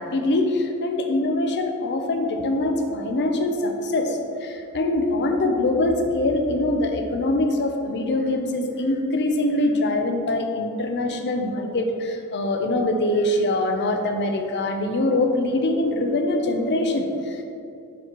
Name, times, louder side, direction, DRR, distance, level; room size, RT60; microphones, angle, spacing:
voice 1, 0.0-17.5, left 2 dB, 50° left, 5 dB, 0.6 m, -23 dB
10.0 x 4.1 x 3.0 m, 2.7 s
head